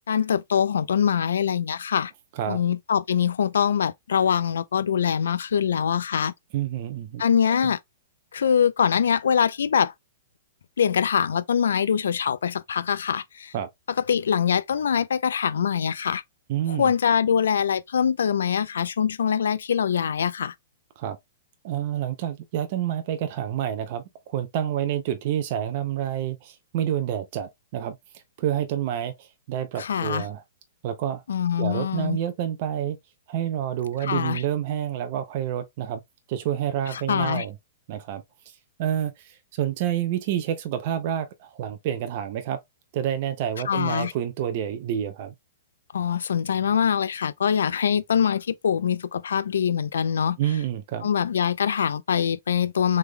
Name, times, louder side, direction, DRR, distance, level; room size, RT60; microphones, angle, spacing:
voice 1, 0.1-2.1 2.5-6.3 7.2-7.8 8.3-9.9 10.8-13.5 14.1-16.2 16.7-20.5 29.8-30.2 31.3-32.2 34.0-34.4 36.9-37.4 43.7-44.1 45.9-50.4 51.0-53.0, left 7 dB, 85° left, 0.4 m, -23 dB
voice 2, 6.5-7.2 7.6-7.7 13.5-13.7 16.5-16.9 21.0-21.2 21.6-30.4 30.8-31.2 31.6-33.0 33.3-36.0 36.3-37.5 37.9-42.6 42.9-45.3 50.4-51.1, right 10 dB, 45° right, 0.5 m, -28 dB
3.5 x 3.3 x 2.2 m
hypercardioid pair, 150°, 0 cm